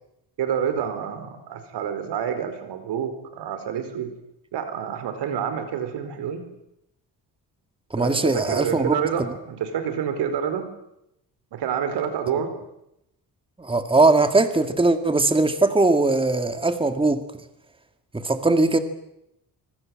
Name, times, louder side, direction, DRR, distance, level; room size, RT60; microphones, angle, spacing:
voice 1, 0.4-4.1 4.5-6.4 8.0-10.7 11.5-12.6, right 8 dB, 85° right, 10 dB, 4.6 m, -28 dB
voice 2, 7.9-9.0 13.6-17.2 18.1-18.8, right 2 dB, 15° right, 8 dB, 2.2 m, -20 dB
25.0 x 24.0 x 7.8 m, 0.82 s
cardioid pair, 100°, 40 cm